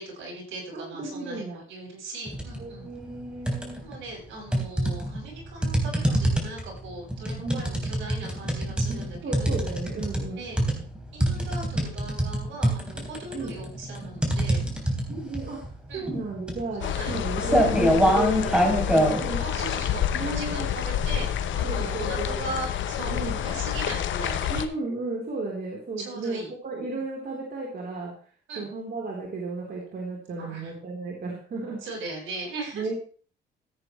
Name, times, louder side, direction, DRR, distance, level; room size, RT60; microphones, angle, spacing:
voice 1, 0.0-2.9 3.8-9.6 10.3-10.6 11.1-14.6 15.9-16.1 16.8-17.7 19.4-24.7 26.0-26.5 26.9-27.0 28.5-28.7 30.4-30.7 31.8-32.9, right 2 dB, 75° right, -2 dB, 6.9 m, -39 dB
voice 2, 0.7-1.6 2.6-3.9 7.4-7.7 9.2-10.4 13.3-13.6 15.1-15.6 15.9-19.4 20.1-20.7 21.6-22.4 23.1-23.4 24.5-28.1 28.6-31.8 32.7-32.9, right 3 dB, 50° right, -3 dB, 3.9 m, -33 dB
sound 1, 2.3-2.6 3.0-4.0 4.5-19.2, equal, 5° right, 3.6 m, -25 dB
sound 2, 16.8-24.7, left 10 dB, 75° left, 1.0 m, -28 dB
14.5 x 9.0 x 3.2 m, 0.41 s
cardioid pair, 90°, 20 cm